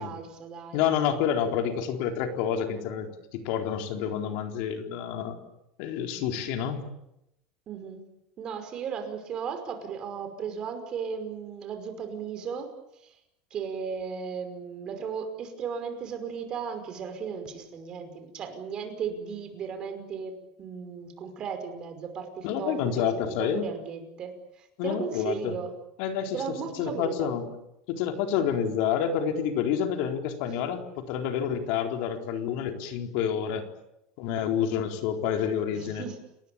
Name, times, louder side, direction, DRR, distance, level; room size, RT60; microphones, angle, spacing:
voice 1, 0.0-0.9 7.7-8.0 8.4-13.2 13.5-23.0 23.4-25.7 26.3-27.3 35.7-36.2, right 6 dB, 35° right, 7 dB, 5.5 m, -36 dB
voice 2, 0.7-5.4 5.8-6.8 22.4-23.6 24.8-25.6 26.0-26.4 26.8-27.5 27.9-33.7 34.2-36.0, left 8 dB, 65° left, 5 dB, 4.1 m, -28 dB
30.0 x 20.0 x 8.8 m, 0.83 s
supercardioid pair, 150°, 3 cm